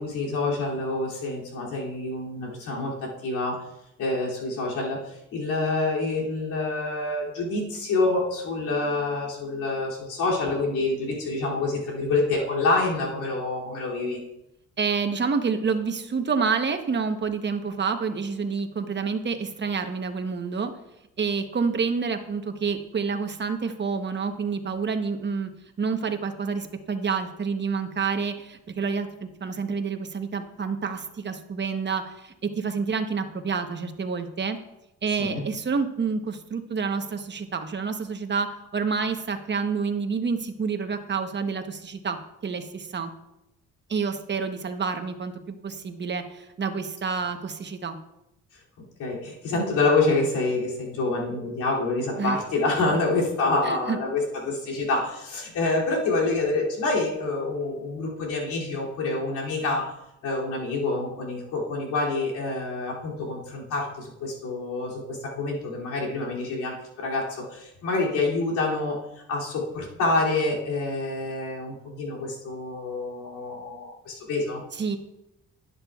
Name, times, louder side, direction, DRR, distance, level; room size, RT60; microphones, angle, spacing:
voice 1, 0.0-3.6 4.0-5.0 5.3-14.2 35.2-35.4 49.0-59.9 60.2-69.0 69.3-74.6, left 2 dB, 90° left, -4 dB, 2.8 m, -27 dB
voice 2, 14.8-20.7 21.2-25.5 25.8-34.6 35.0-42.2 42.4-43.1 43.9-48.0 52.2-52.4 52.9-53.0 53.6-54.0 74.8-75.0, right 5 dB, 35° right, 7 dB, 1.0 m, -28 dB
11.0 x 9.9 x 2.4 m, 0.86 s
cardioid pair, 90°, 30 cm